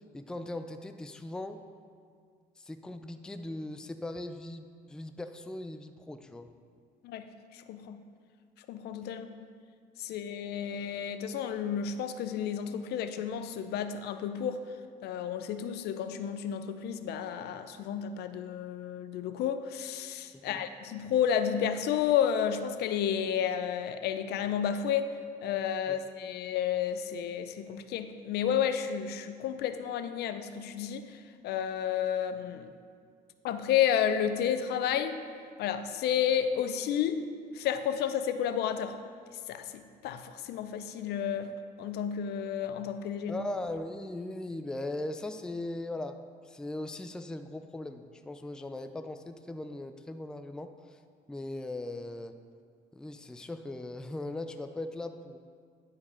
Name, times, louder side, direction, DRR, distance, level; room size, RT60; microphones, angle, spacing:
voice 1, 0.0-1.6 2.6-6.5 20.4-20.6 25.9-26.0 43.3-46.2 46.4-50.7 51.3-52.4 52.9-55.4, left 2 dB, 5° left, 8 dB, 0.3 m, -39 dB
voice 2, 7.5-8.0 8.7-9.5 10.0-14.6 15.0-25.1 25.4-31.1 31.4-32.7 33.4-35.2 35.6-37.3 37.5-38.9 39.5-41.5 41.8-43.4, left 9 dB, 75° left, 10 dB, 0.5 m, -31 dB
10.5 x 4.8 x 4.3 m, 2.1 s
cardioid pair, 110°, 17 cm